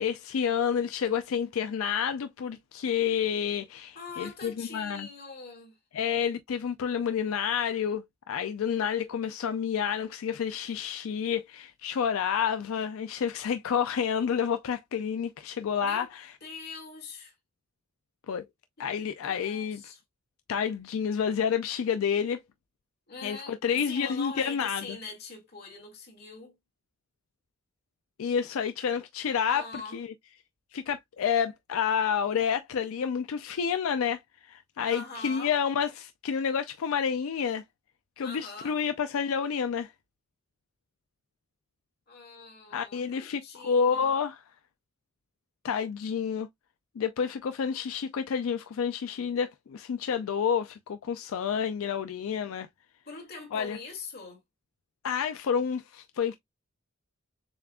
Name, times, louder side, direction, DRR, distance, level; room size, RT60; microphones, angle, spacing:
voice 1, 0.0-5.1 5.9-16.3 18.3-18.4 18.8-19.9 20.5-22.4 23.2-25.0 28.2-29.6 29.9-30.1 30.7-34.2 34.5-37.6 38.2-39.9 42.7-44.4 45.6-46.5 47.0-52.7 53.5-53.8 55.0-56.4, left 7 dB, 85° left, 0.4 m, -29 dB
voice 2, 4.0-5.8 15.8-16.1 16.4-17.4 19.3-20.0 23.1-26.5 29.5-30.0 34.8-35.5 38.2-38.8 42.1-44.2 53.1-54.4, left 4 dB, 50° left, 1.9 m, -42 dB
7.0 x 2.4 x 2.2 m
head